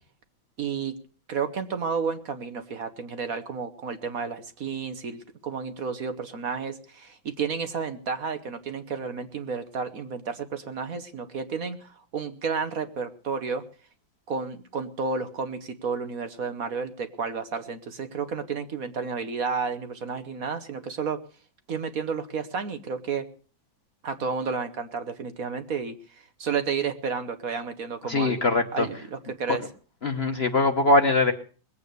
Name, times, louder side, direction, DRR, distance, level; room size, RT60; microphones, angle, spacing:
voice 1, 0.6-0.9 1.3-13.6 14.3-21.2 21.7-23.3 24.0-28.4 28.7-29.6, right 5 dB, 55° right, 9 dB, 1.3 m, -31 dB
voice 2, 28.1-28.9 30.0-31.3, left 2 dB, 40° left, 6 dB, 1.1 m, -22 dB
21.0 x 8.5 x 6.7 m, 0.40 s
omnidirectional pair, 2.0 m